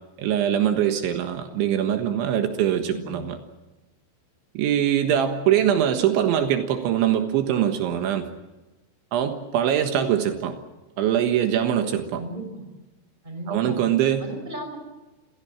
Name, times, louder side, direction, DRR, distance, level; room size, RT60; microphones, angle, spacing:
voice 1, 0.2-3.4 4.6-8.3 9.1-10.6 11.0-12.2 13.5-14.3, right 10 dB, 80° right, 6 dB, 3.8 m, -23 dB
voice 2, 2.8-3.1 12.2-12.6 13.2-13.8 14.2-14.8, right 1 dB, 10° right, 4 dB, 5.4 m, -35 dB
28.5 x 17.0 x 8.8 m, 1.1 s
omnidirectional pair, 5.4 m